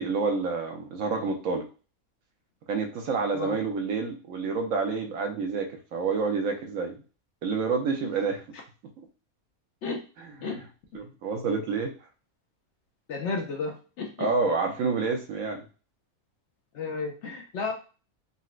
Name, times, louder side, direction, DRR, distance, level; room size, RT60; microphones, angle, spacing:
voice 1, 0.0-1.7 2.7-7.0 7.4-8.4 10.4-10.6 10.9-11.9 14.2-15.7, right 4 dB, 75° right, 3 dB, 1.1 m, -28 dB
voice 2, 13.1-14.3 16.7-17.7, left 4 dB, 65° left, 1 dB, 0.8 m, -32 dB
3.9 x 2.1 x 2.4 m, 0.35 s
omnidirectional pair, 1.5 m